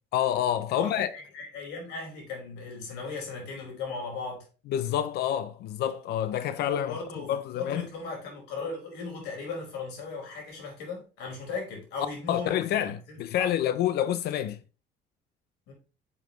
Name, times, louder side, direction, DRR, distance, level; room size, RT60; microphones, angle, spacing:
voice 1, 0.1-1.1 4.7-7.0 7.3-7.9 12.3-14.6, left 11 dB, 70° left, 0.7 m, -28 dB
voice 2, 0.7-4.4 6.7-13.5 15.7-15.8, left 4 dB, 90° left, 5.0 m, -37 dB
10.0 x 7.3 x 3.1 m
cardioid pair, 110°, 17 cm